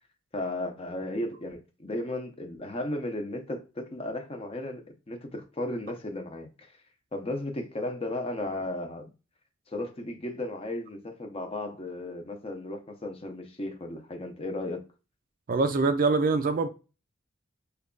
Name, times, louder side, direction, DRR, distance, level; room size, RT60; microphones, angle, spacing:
voice 1, 0.3-6.7 7.1-9.1 9.7-14.8, left 1 dB, 30° left, 0.6 m, -35 dB
voice 2, 15.5-16.7, right 3 dB, 45° right, 0.4 m, -24 dB
3.1 x 2.3 x 3.7 m
head